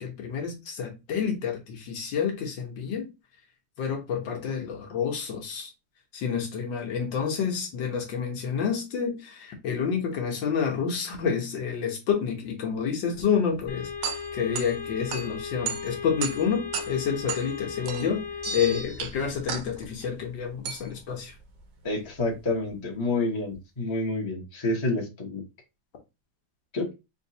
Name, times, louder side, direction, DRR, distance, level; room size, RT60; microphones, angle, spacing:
voice 1, 0.0-3.1 3.8-5.7 6.1-13.9 14.3-18.2 18.5-21.3, left 7 dB, 65° left, 1.5 m, -29 dB
sound 1, 13.5-22.7, right 6 dB, 75° right, 0.9 m, -37 dB
sound 2, 13.7-18.8, left 6 dB, 80° left, 1.8 m, -37 dB
sound 3, 18.4-19.4, right 1 dB, 40° right, 0.3 m, -37 dB
voice 2, 21.8-25.4 26.7-26.9, left 2 dB, 25° left, 0.6 m, -28 dB
4.0 x 2.6 x 2.7 m
omnidirectional pair, 2.3 m